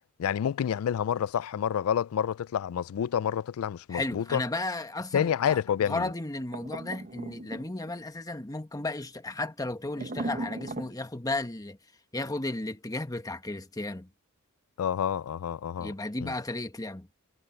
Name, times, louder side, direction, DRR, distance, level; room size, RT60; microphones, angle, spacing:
voice 1, 0.2-4.4 5.1-6.1 14.8-15.9 16.2-16.3, left 8 dB, 75° left, 0.3 m, -28 dB
voice 2, 3.9-5.6 5.8-11.8 12.1-14.1 15.8-17.1, left 2 dB, 15° left, 1.3 m, -34 dB
sound 1, 6.5-8.0 9.9-10.9, right 2 dB, 40° right, 0.8 m, -37 dB
head